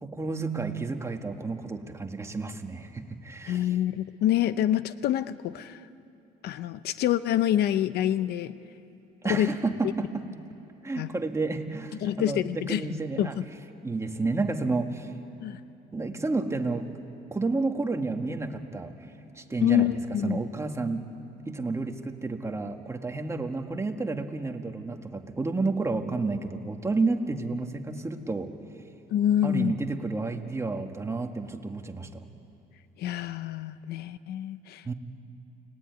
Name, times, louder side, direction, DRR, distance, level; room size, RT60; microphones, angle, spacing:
voice 1, 0.0-3.7 9.2-10.3 10.8-13.4 13.8-15.1 15.9-16.9 17.3-18.9 19.3-19.9 20.2-21.0 21.5-28.5 29.4-32.3 34.9-35.0, right 3 dB, 15° right, 4 dB, 1.8 m, -30 dB
voice 2, 3.5-5.8 6.4-8.6 9.3-9.5 11.0-11.1 12.0-12.8 13.2-13.5 15.4-15.6 19.6-20.4 29.1-29.7 33.0-34.9, left 12 dB, 70° left, 14 dB, 0.8 m, -26 dB
29.5 x 19.5 x 9.6 m, 3.0 s
cardioid pair, 110°, 17 cm